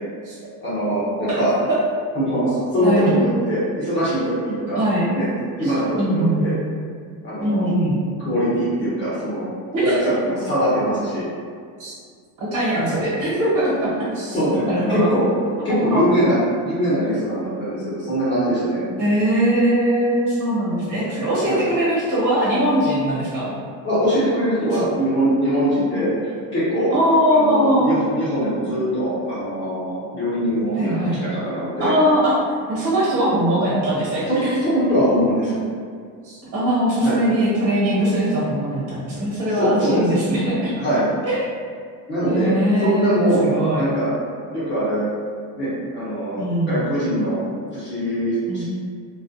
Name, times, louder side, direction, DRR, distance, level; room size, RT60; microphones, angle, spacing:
voice 1, 0.6-1.5 2.1-4.8 5.1-5.3 5.6-6.5 7.2-7.7 8.2-9.4 9.8-11.2 14.3-15.3 15.6-18.8 21.5-21.6 23.8-26.9 27.3-30.9 31.2-31.9 34.3-35.5 37.0-37.2 39.5-40.0 40.8-41.1 42.1-42.5 42.8-43.4 43.7-44.1 44.5-45.1 45.6-47.4 47.7-48.6, equal, 30° left, -10 dB, 0.9 m, -22 dB
voice 2, 2.8-3.1 4.8-5.0 5.6-6.5 7.4-8.0 9.7-10.1 11.8-11.9 12.4-14.4 14.7-15.1 15.7-16.0 19.0-23.5 24.7-24.8 26.9-28.0 30.7-31.2 31.8-32.4 32.7-34.6 36.2-40.7 41.3-41.4 42.2-43.8 46.4-46.9 48.5-48.6, right 1 dB, 55° right, -8 dB, 1.2 m, -21 dB
2.4 x 2.1 x 2.6 m, 2.1 s
cardioid pair, 150°, 38 cm